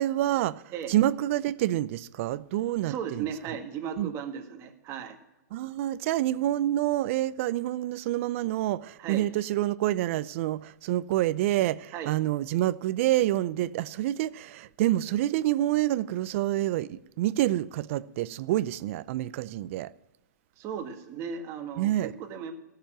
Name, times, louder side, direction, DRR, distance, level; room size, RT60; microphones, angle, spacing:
voice 1, 0.0-3.3 4.0-4.1 5.5-19.9 21.8-22.1, right 14 dB, 45° right, 0.5 m, -27 dB
voice 2, 2.8-5.2 9.0-9.2 11.9-12.1 20.6-21.9 22.2-22.5, right 7 dB, 30° right, 1.6 m, -36 dB
14.5 x 6.8 x 8.9 m
hypercardioid pair, 145°, 9 cm